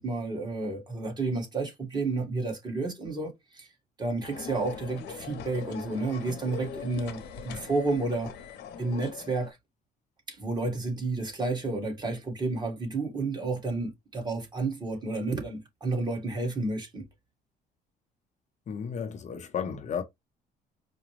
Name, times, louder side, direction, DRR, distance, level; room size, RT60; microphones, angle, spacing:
voice 1, 0.0-3.7 4.0-8.3 8.8-9.6 10.3-17.1, right 3 dB, 25° right, 1.7 m, -31 dB
sound 1, 4.2-9.5, left 6 dB, 80° left, 0.9 m, -41 dB
voice 2, 18.7-20.0, left 7 dB, 45° left, 0.8 m, -33 dB
4.9 x 2.3 x 3.2 m
cardioid pair, 110°, 17 cm